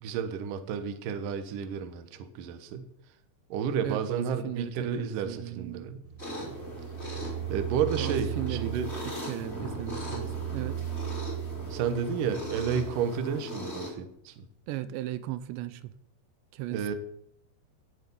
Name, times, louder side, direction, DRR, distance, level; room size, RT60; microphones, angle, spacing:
voice 1, 0.0-2.9 3.5-6.0 6.4-6.5 7.5-8.9 11.7-14.4 16.7-16.9, right 7 dB, 70° right, 2.2 m, -31 dB
voice 2, 3.8-5.9 8.0-8.8 9.1-10.9 14.7-15.9 16.5-17.0, right 14 dB, 85° right, 2.9 m, -37 dB
sound 1, 6.0-12.9, right 12 dB, 30° right, 2.6 m, -37 dB
sound 2, 6.2-13.9, left 1 dB, 15° left, 3.4 m, -39 dB
18.0 x 7.3 x 5.5 m
omnidirectional pair, 5.1 m